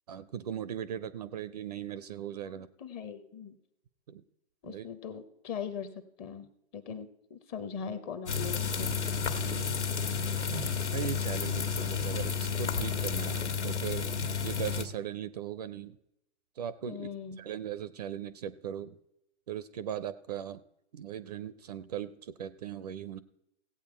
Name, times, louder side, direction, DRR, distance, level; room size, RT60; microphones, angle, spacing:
voice 1, 0.1-2.7 4.1-4.2 4.6-4.9 9.3-9.8 10.2-10.3 10.9-14.1 14.4-16.0 16.6-17.1 17.4-19.0 19.5-20.6 20.9-23.2, right 9 dB, 35° right, 15 dB, 0.5 m, -38 dB
voice 2, 2.5-3.6 4.6-6.5 6.7-8.9 16.9-17.4, left 7 dB, 20° left, 10 dB, 0.6 m, -40 dB
sound 1, 8.3-14.9, left 6 dB, 80° left, 1.6 m, -31 dB
16.0 x 8.4 x 4.3 m, 0.82 s
figure-of-eight pair, 125°, 34 cm